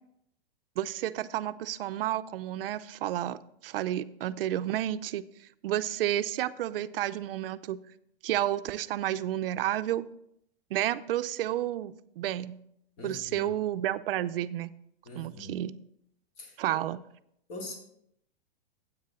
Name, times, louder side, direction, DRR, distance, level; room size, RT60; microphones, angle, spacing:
voice 1, 0.8-5.2 5.6-7.8 8.2-10.1 10.7-12.6 13.0-14.7 15.1-15.7 16.6-17.0, right 12 dB, 70° right, 13 dB, 0.6 m, -31 dB
voice 2, 13.0-13.5 15.1-15.6 16.4-16.8 17.5-17.8, left 2 dB, 40° left, 1 dB, 2.7 m, -43 dB
9.6 x 8.1 x 3.7 m, 0.73 s
hypercardioid pair, 155°, 30 cm